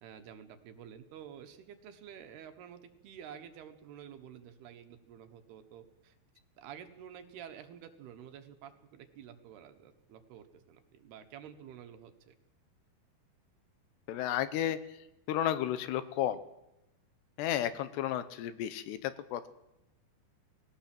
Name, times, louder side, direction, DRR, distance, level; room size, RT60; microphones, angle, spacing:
voice 1, 0.0-6.1 6.6-12.3, right 9 dB, 70° right, 7 dB, 3.0 m, -50 dB
voice 2, 14.1-15.0 15.3-16.4 17.4-19.5, left 11 dB, 75° left, 13 dB, 2.9 m, -33 dB
20.0 x 17.5 x 7.6 m, 0.90 s
omnidirectional pair, 5.1 m